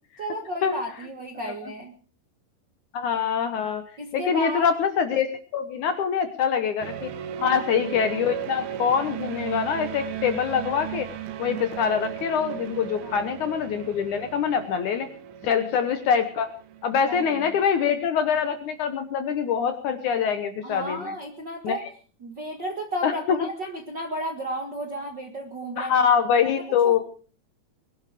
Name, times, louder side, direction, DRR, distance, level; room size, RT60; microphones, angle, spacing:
voice 1, 0.2-1.9 4.0-4.7 7.4-7.6 13.0-13.3 15.5-15.6 17.1-17.5 20.6-21.9 22.2-26.1 26.6-27.0, equal, 45° right, 3 dB, 1.4 m, -33 dB
voice 2, 2.9-3.8 4.1-7.1 7.4-11.1 11.4-15.1 15.4-16.5 16.8-21.1 21.6-21.8 23.0-23.1 25.8-27.0, left 7 dB, 70° left, 8 dB, 2.0 m, -24 dB
sound 1, 6.8-18.2, right 10 dB, 75° right, 3.0 m, -37 dB
21.5 x 12.0 x 4.9 m, 0.41 s
omnidirectional pair, 4.5 m